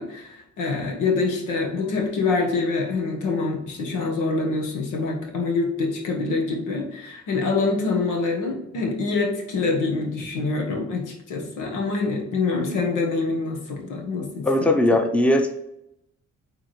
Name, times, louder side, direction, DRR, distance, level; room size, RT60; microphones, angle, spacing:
voice 1, 0.0-14.7, left 3 dB, 90° left, 1 dB, 1.5 m, -25 dB
voice 2, 14.4-15.5, left 1 dB, 5° left, 5 dB, 0.8 m, -19 dB
8.9 x 3.6 x 3.2 m, 0.83 s
cardioid pair, 90°, 30 cm